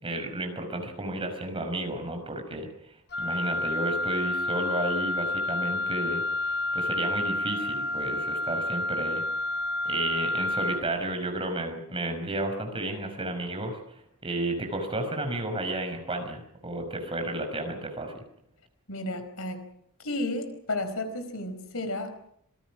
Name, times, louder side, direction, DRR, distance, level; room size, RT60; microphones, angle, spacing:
voice 1, 0.0-9.2 9.9-13.8 14.2-18.2, right 1 dB, 25° right, 5 dB, 5.8 m, -32 dB
Wind instrument woodwind instrument, 3.1-10.9, left 2 dB, 50° left, 1.4 m, -29 dB
voice 2, 18.9-19.6 20.0-22.2, left 2 dB, 70° left, 8 dB, 4.7 m, -32 dB
27.0 x 21.0 x 6.2 m, 0.72 s
head